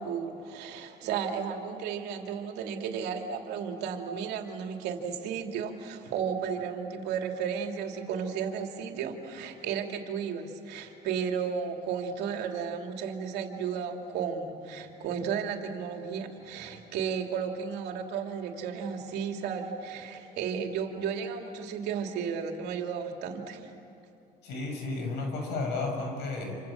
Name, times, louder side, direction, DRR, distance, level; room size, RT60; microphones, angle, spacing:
voice 1, 0.0-23.7, right 7 dB, 85° right, 3 dB, 2.9 m, -34 dB
voice 2, 24.4-26.6, left 3 dB, 80° left, 3 dB, 7.0 m, -32 dB
28.5 x 27.5 x 7.5 m, 2.7 s
cardioid pair, 110°, 17 cm